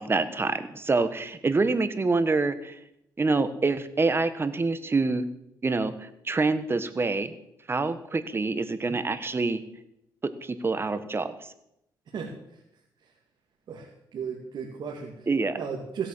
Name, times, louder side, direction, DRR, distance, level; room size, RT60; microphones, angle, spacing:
voice 1, 0.0-2.8 3.2-5.2 5.6-7.3 7.7-9.6 10.4-11.3 15.3-15.6, right 3 dB, 30° right, 12 dB, 1.4 m, -26 dB
voice 2, 12.1-12.6 13.0-13.1 13.7-15.3 15.6-16.1, right 6 dB, 60° right, 0 dB, 2.5 m, -36 dB
16.5 x 8.3 x 7.5 m, 0.80 s
cardioid pair, 80°, 8 cm